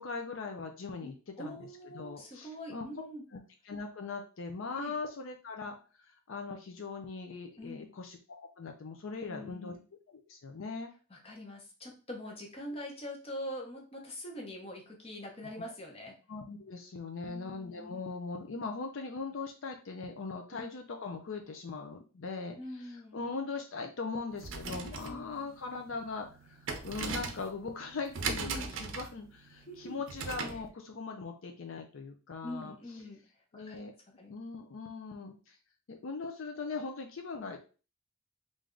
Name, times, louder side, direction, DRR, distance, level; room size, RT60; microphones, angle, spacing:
voice 1, 0.0-1.7 1.9-2.9 3.3-5.8 6.0-9.8 10.1-10.9 15.5-15.6 16.3-32.7 33.5-33.9 34.3-35.6 35.9-37.6, left 4 dB, 65° left, 4 dB, 0.5 m, -40 dB
voice 2, 1.0-3.2 4.7-4.9 7.6-7.9 9.3-9.8 11.1-16.2 17.2-18.1 20.5-20.7 22.6-23.2 25.0-25.5 28.4-28.8 29.7-30.0 32.4-33.2 33.5-33.8 34.2-34.3, left 1 dB, 25° left, 1 dB, 0.8 m, -44 dB
sound 1, 24.3-30.7, right 4 dB, 60° right, 0.6 m, -39 dB
3.2 x 2.6 x 3.7 m, 0.35 s
head